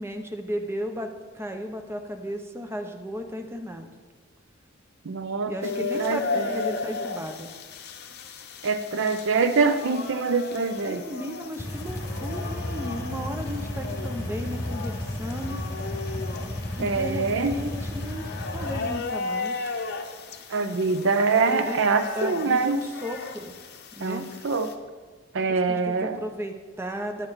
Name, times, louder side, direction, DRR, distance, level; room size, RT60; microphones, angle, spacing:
voice 1, 0.0-3.9 5.5-7.5 10.9-15.6 16.8-18.2 18.5-19.7 21.4-21.8 22.1-23.6 23.9-24.3 25.7-27.3, equal, 10° right, 4 dB, 0.7 m, -35 dB
voice 2, 5.1-5.5 5.9-6.7 8.6-11.0 16.8-17.6 20.5-22.8 24.0-24.7 25.3-26.2, right 4 dB, 60° right, 10 dB, 0.5 m, -24 dB
sound 1, 5.6-24.7, left 4 dB, 50° left, 0.8 m, -35 dB
sound 2, 11.6-18.9, left 1 dB, 20° left, 2.4 m, -33 dB
9.8 x 8.7 x 4.1 m, 1.4 s
head